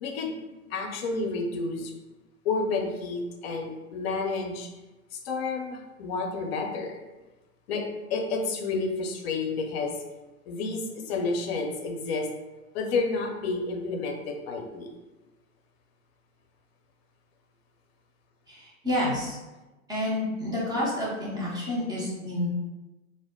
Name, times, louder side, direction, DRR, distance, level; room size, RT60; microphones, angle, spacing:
voice 1, 0.0-0.3 0.7-1.9 2.4-4.7 5.2-7.0 7.7-10.0 10.5-12.3 12.7-14.9, left 3 dB, 45° left, 2 dB, 0.6 m, -30 dB
voice 2, 18.5-19.4 19.9-22.5, left 1 dB, 10° right, -7 dB, 0.5 m, -29 dB
2.2 x 2.0 x 3.5 m, 1.1 s
hypercardioid pair, 115°, 42 cm